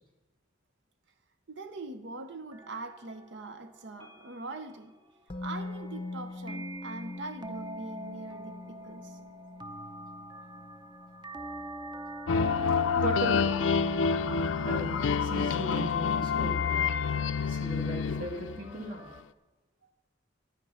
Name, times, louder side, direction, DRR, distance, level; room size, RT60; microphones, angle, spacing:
voice 1, 1.5-4.9 5.4-9.2, right 3 dB, 65° right, 0.8 m, -42 dB
sound 1, 2.5-19.2, right 1 dB, 25° right, 0.7 m, -46 dB
Musical instrument, 5.3-13.2 13.5-13.6, left 2 dB, 30° left, 0.6 m, -44 dB
sound 2, 12.3-18.9, left 5 dB, 80° left, 0.5 m, -28 dB
voice 2, 12.7-13.6 14.6-16.6 17.5-19.1, right 2 dB, 45° right, 1.9 m, -38 dB
12.0 x 9.3 x 5.7 m
head